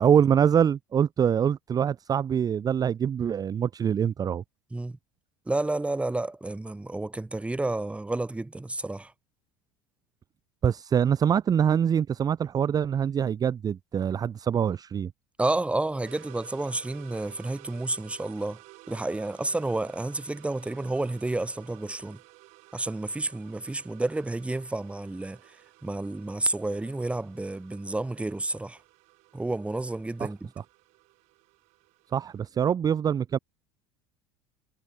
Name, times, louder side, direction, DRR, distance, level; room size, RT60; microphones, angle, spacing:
voice 1, 0.0-4.4 10.6-15.1 30.2-30.3 32.1-33.4, right 8 dB, 30° right, 0.7 m, -24 dB
voice 2, 5.5-9.1 15.4-18.6 18.9-22.2 22.7-25.4 25.8-28.8 29.3-30.5, right 2 dB, 10° right, 1.8 m, -30 dB
sound 1, 16.0-32.4, right 27 dB, 65° right, 6.9 m, -54 dB
hypercardioid pair, 75°, 12 cm